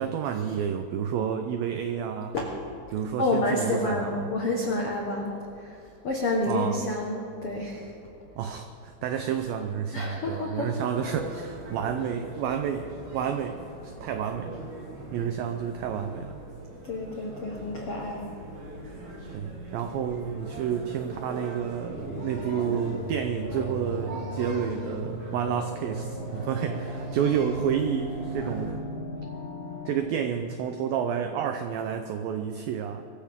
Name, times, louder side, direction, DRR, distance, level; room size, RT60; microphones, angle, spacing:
voice 1, 0.0-2.4 2.9-4.3 6.5-6.8 8.4-14.7 15.1-16.4 19.3-28.8 29.9-33.0, right 8 dB, 85° right, 6 dB, 2.0 m, -30 dB
voice 2, 3.2-7.9 9.9-10.8 16.8-18.3, left 2 dB, 80° left, -1 dB, 1.3 m, -29 dB
sound 1, 10.9-28.7, right 1 dB, 60° right, 6.2 m, -42 dB
sound 2, 21.9-29.9, right 1 dB, 35° left, 5.1 m, -36 dB
23.5 x 14.5 x 3.7 m, 2.7 s
omnidirectional pair, 5.0 m